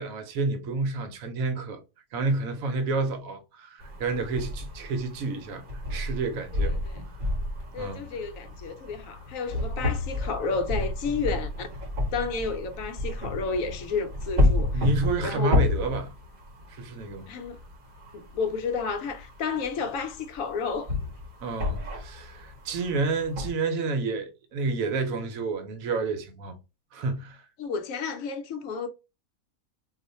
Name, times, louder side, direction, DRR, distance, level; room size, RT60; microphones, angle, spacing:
voice 1, 0.0-1.8 2.1-5.6 5.9-6.9 7.8-8.0 14.7-16.1 16.7-17.3 21.4-26.6 26.9-27.4, right 3 dB, 70° right, 1.1 m, -30 dB
sound 1, 3.8-23.5, left 2 dB, 45° right, 0.8 m, -31 dB
voice 2, 7.7-11.7 12.1-14.9 15.2-15.6 17.3-17.6 18.1-20.9 27.6-28.9, left 4 dB, 70° left, 0.9 m, -31 dB
2.4 x 2.4 x 4.0 m
omnidirectional pair, 1.5 m